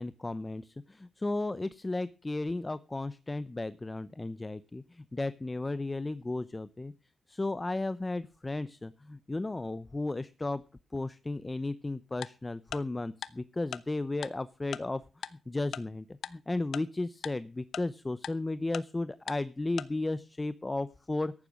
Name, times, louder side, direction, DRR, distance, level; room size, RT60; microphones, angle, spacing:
voice 1, 0.0-6.9 7.3-10.6 10.9-15.0 15.5-21.3, left 2 dB, 20° left, 15 dB, 0.7 m, -34 dB
Tick-tock, 12.2-12.3 12.7-12.8 13.2-13.3 13.7-13.8 14.2-14.3 14.7-14.8 15.2-15.3 15.7-15.8 16.2-16.3 16.7-16.8 17.2-17.3 17.7-17.8 18.2-18.3 18.7-18.8 19.3-19.4 19.8-19.9, left 8 dB, 80° left, 0.8 m, -37 dB
14.5 x 11.0 x 6.2 m, 0.34 s
cardioid pair, 105°, 0 cm